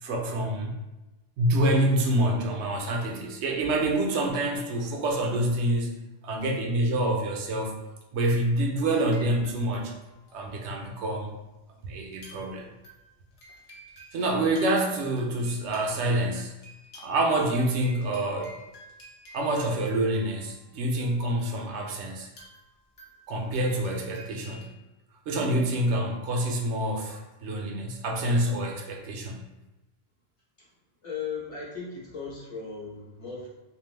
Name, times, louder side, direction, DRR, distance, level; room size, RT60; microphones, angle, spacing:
voice 1, 0.0-0.8 1.4-7.8 8.1-9.9 10.3-11.3 11.8-12.7 14.1-16.5 17.0-18.5 19.3-22.3 23.3-24.7 25.3-29.4, right 1 dB, 75° right, 1 dB, 0.8 m, -27 dB
sound 1, 8.9-9.8 10.0-10.8 12.0-12.6 12.8-20.8 22.2-24.6, equal, 65° left, 0.9 m, -51 dB
voice 2, 31.0-33.5, left 5 dB, 30° left, -6 dB, 0.9 m, -37 dB
2.6 x 2.3 x 3.2 m, 1.0 s
omnidirectional pair, 1.2 m